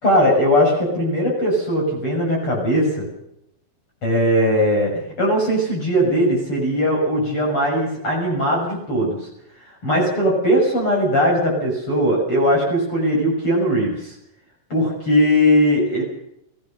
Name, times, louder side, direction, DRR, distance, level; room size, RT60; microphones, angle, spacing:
voice 1, 0.0-3.1 4.0-9.3 9.8-14.2 14.7-16.0, equal, 35° left, -2 dB, 7.2 m, -19 dB
23.5 x 17.0 x 6.7 m, 0.81 s
omnidirectional pair, 4.2 m